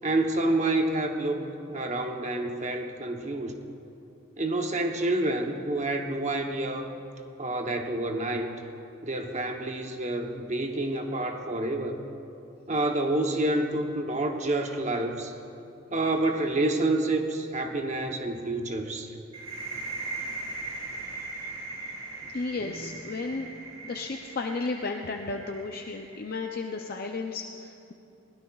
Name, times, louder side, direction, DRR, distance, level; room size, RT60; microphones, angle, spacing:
voice 1, 0.0-3.5 4.4-6.9 7.4-8.5 9.0-12.0 12.7-15.3 15.9-19.1 22.6-23.0, right 2 dB, 35° right, 4 dB, 0.9 m, -28 dB
sound 1, 19.3-26.9, right 3 dB, 80° right, 3.7 m, -39 dB
voice 2, 22.3-23.5 23.8-27.9, left 3 dB, 45° left, 3 dB, 0.5 m, -33 dB
21.5 x 16.5 x 2.4 m, 2.9 s
head